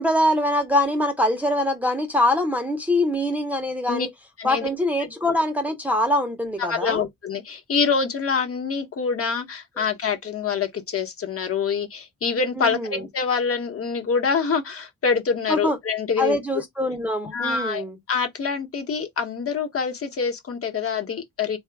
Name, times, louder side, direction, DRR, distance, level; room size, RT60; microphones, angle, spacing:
voice 1, 0.0-4.1 4.4-7.0 12.6-13.0 15.5-15.8 16.2-18.0, left 1 dB, 5° right, 0.6 m, -23 dB
voice 2, 4.4-4.7 6.6-16.4 17.3-21.6, left 5 dB, 50° left, 1.0 m, -25 dB
3.8 x 2.3 x 3.4 m
wide cardioid pair, 140°, 30 cm